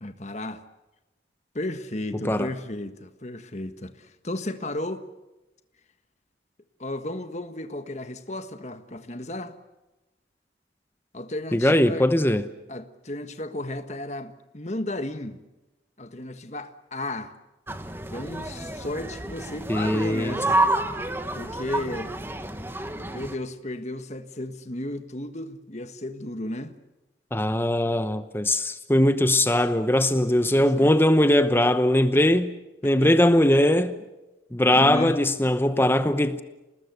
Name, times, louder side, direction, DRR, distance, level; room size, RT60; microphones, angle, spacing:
voice 1, 0.0-0.6 1.5-5.1 6.8-9.5 11.1-12.1 12.7-15.4 16.0-17.3 18.1-20.7 21.3-22.1 23.1-26.7 30.4-30.9 33.0-33.1 34.7-35.2, left 1 dB, 35° left, 1.5 m, -34 dB
voice 2, 11.5-12.5 19.7-20.3 27.3-32.5 32.8-33.9 34.5-36.4, left 1 dB, 10° left, 0.9 m, -20 dB
sound 1, 17.7-23.3, right 2 dB, 10° right, 1.2 m, -29 dB
29.0 x 19.5 x 8.2 m
head